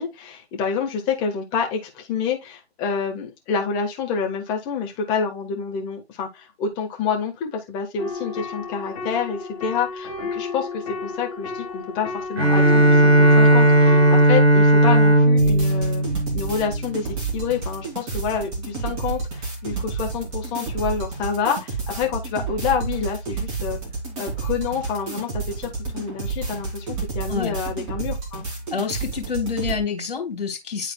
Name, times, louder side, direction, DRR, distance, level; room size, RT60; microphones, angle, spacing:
voice 1, 0.0-16.0 16.3-23.8 24.2-28.4, left 6 dB, 15° left, 1.3 m, -28 dB
sound 1, 8.0-14.3, left 4 dB, 35° left, 1.9 m, -32 dB
Bowed string instrument, 12.4-17.1, right 1 dB, 75° right, 2.6 m, -16 dB
sound 2, 15.4-29.8, right 4 dB, 20° right, 2.6 m, -30 dB
voice 2, 28.7-30.9, left 6 dB, 55° left, 3.0 m, -27 dB
11.0 x 4.0 x 2.3 m
figure-of-eight pair, 140°, 32 cm